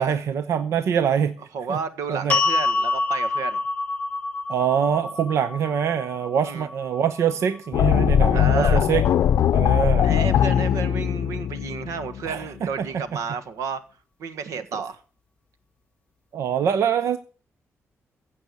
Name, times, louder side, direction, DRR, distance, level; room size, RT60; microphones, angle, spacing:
voice 1, 0.0-1.3 1.7-1.8 2.1-2.4 4.5-9.1 9.5-10.1 12.2-12.9 16.3-17.2, right 8 dB, 65° right, 0.8 m, -24 dB
voice 2, 1.5-3.6 6.4-6.7 8.3-8.8 10.0-13.8 14.2-15.0, right 5 dB, 85° right, 1.4 m, -31 dB
sound 1, 2.3-8.5, left 3 dB, 20° left, 0.9 m, -28 dB
sound 2, 7.7-12.7, left 9 dB, 70° left, 0.6 m, -20 dB
15.5 x 6.1 x 8.3 m
wide cardioid pair, 175°, 5 cm